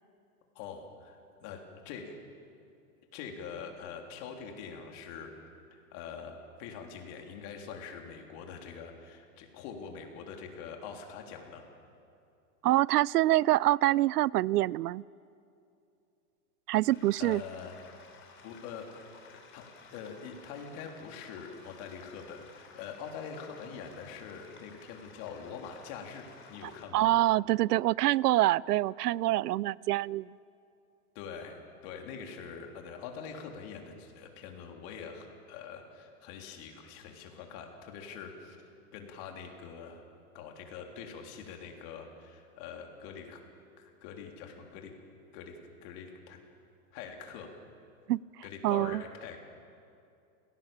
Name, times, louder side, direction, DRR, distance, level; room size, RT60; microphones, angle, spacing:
voice 1, 0.6-2.2 3.1-5.3 5.7-11.7 17.2-17.8 18.4-19.7 19.9-27.2 31.2-38.6 38.9-40.0 40.3-43.4 43.8-44.9 45.3-46.4 46.9-47.5 48.4-49.4, left 6 dB, 45° left, 2 dB, 3.6 m, -44 dB
voice 2, 12.6-15.0 16.7-17.4 26.6-30.3 48.1-48.2 48.6-49.0, right 16 dB, 85° right, 24 dB, 0.5 m, -26 dB
sound 1, 16.7-26.8, left 5 dB, 25° left, 3.4 m, -55 dB
28.5 x 18.0 x 7.4 m, 2.6 s
hypercardioid pair, 140°, 46 cm